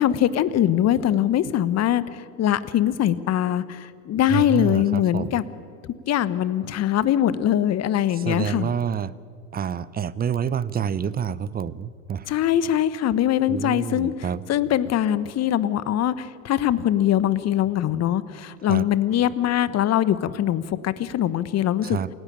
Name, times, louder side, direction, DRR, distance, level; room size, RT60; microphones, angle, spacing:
voice 1, 0.0-5.4 6.1-8.7 12.3-14.1 14.5-22.0, left 11 dB, 35° left, 16 dB, 1.1 m, -22 dB
voice 2, 4.3-5.4 8.1-9.1 9.5-12.3 13.5-14.4 18.7-18.9 21.8-22.1, right 8 dB, 20° right, 19 dB, 0.7 m, -28 dB
27.5 x 16.0 x 8.9 m, 2.3 s
hypercardioid pair, 80°, 45 cm